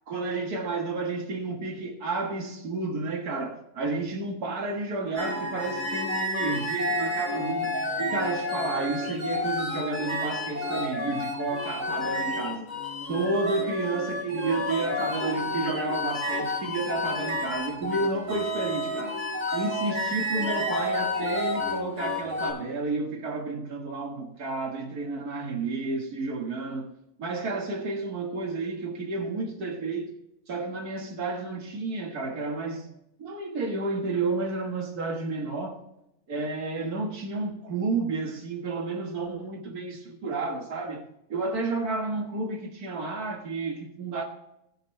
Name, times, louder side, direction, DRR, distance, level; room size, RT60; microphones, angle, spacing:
voice 1, 0.1-12.7 13.1-19.2 19.5-26.9 27.2-30.1 30.5-32.9 33.2-35.8 36.3-41.0 41.3-44.2, right 3 dB, 80° right, 1.9 m, -31 dB
sound 1, 5.1-22.5, left 1 dB, 30° right, 4.2 m, -30 dB
18.5 x 6.3 x 3.1 m
omnidirectional pair, 1.6 m